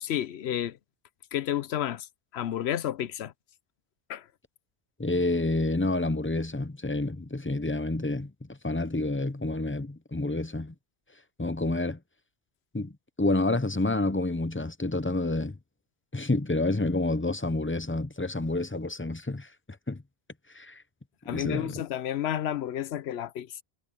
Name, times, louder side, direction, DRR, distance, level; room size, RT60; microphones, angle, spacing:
voice 1, 0.0-0.8 1.3-2.1 2.3-3.3 4.1-4.3 21.3-23.6, left 11 dB, 85° left, 0.9 m, -31 dB
voice 2, 5.0-10.7 11.4-12.0 12.7-12.9 13.2-15.6 16.1-19.5 19.9-20.0 20.5-20.8 21.2-21.7, left 2 dB, 15° left, 0.6 m, -29 dB
omnidirectional pair, 1.1 m